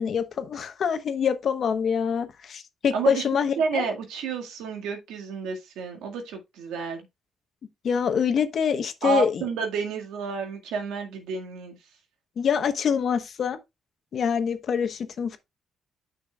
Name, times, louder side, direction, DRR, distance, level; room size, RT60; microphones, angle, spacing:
voice 1, 0.0-3.8 7.8-9.5 12.4-13.6 14.1-15.4, left 7 dB, 55° left, 1.1 m, -25 dB
voice 2, 2.9-3.2 3.6-7.0 9.0-11.8, right 6 dB, 90° right, 1.9 m, -30 dB
9.4 x 6.0 x 2.3 m
cardioid pair, 90°, 0 cm